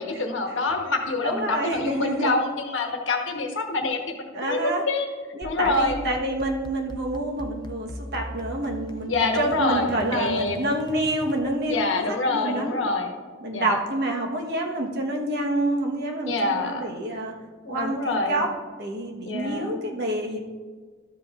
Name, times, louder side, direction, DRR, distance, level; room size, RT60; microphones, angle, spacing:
voice 1, 0.0-5.1 5.4-6.0 9.1-10.6 11.7-13.1 13.5-13.8 16.3-16.9 17.6-18.4 19.2-19.8, left 3 dB, 65° left, 2 dB, 1.2 m, -26 dB
voice 2, 1.2-2.3 4.3-4.8 5.3-12.7 13.4-17.3 17.7-18.5 18.8-20.4, right 1 dB, 55° right, 0 dB, 1.2 m, -28 dB
sound 1, 5.4-11.8, left 1 dB, 20° left, 0.5 m, -41 dB
12.5 x 7.7 x 2.5 m, 1.5 s
head